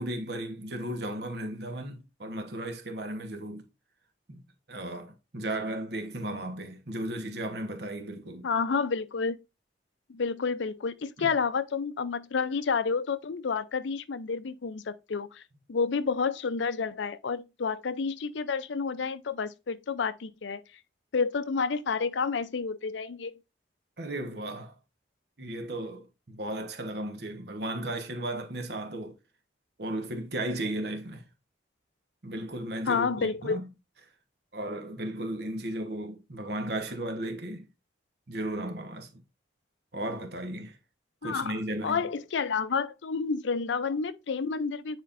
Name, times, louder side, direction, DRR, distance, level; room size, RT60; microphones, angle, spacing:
voice 1, 0.0-3.7 4.3-4.4 4.7-8.5 11.2-11.3 24.0-24.7 25.4-29.2 29.8-31.2 32.2-33.7 34.5-37.7 38.3-39.2 39.9-40.8 41.2-42.1, right 1 dB, 60° right, 1.2 m, -35 dB
voice 2, 8.4-9.4 10.1-15.4 15.7-20.6 21.1-23.3 32.9-33.6 41.2-45.0, left 5 dB, 75° left, 0.5 m, -30 dB
9.3 x 4.3 x 2.5 m
head